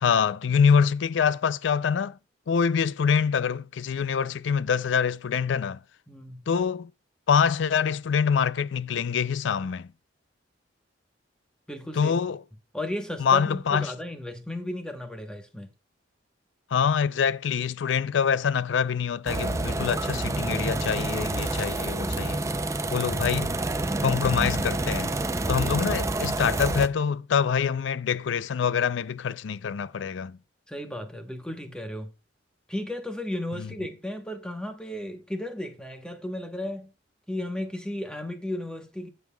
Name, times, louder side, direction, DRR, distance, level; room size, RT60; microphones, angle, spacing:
voice 1, 0.0-2.2 2.5-5.8 6.5-6.9 7.3-9.9 11.9-12.4 13.2-13.9 16.7-22.4 22.9-23.6 24.0-25.2 25.5-30.4 33.6-33.7, left 6 dB, 75° left, 0.4 m, -25 dB
voice 2, 6.1-6.5 11.7-12.1 12.7-15.7 30.7-32.1 32.7-36.9 37.3-39.1, left 1 dB, 5° left, 1.1 m, -34 dB
sound 1, 19.3-26.9, right 2 dB, 15° right, 0.4 m, -28 dB
15.0 x 5.5 x 2.3 m
head